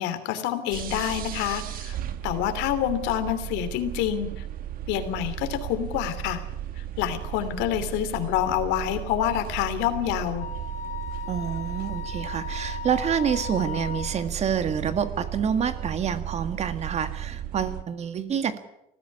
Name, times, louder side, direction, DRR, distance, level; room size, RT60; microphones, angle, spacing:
voice 1, 0.0-2.0 2.2-4.4 4.9-6.4 7.0-10.5, left 11 dB, 90° left, 10 dB, 2.9 m, -27 dB
sound 1, 0.7-17.8, right 11 dB, 55° right, 1.6 m, -35 dB
Wind instrument woodwind instrument, 10.4-14.2, left 7 dB, 45° left, 2.6 m, -37 dB
voice 2, 11.3-18.6, right 7 dB, 40° right, 10 dB, 1.8 m, -27 dB
19.5 x 15.0 x 9.8 m, 0.85 s
cardioid pair, 140°, 18 cm